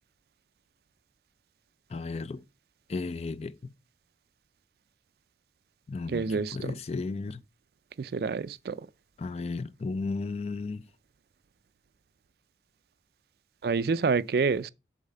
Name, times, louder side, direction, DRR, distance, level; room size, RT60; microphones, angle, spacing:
voice 1, 1.9-2.4 2.9-3.5 5.9-7.4 9.2-10.8, left 3 dB, 35° left, 0.3 m, -34 dB
voice 2, 6.1-6.7 8.0-8.8 13.6-14.7, right 5 dB, 60° right, 0.4 m, -27 dB
7.1 x 4.0 x 5.4 m
head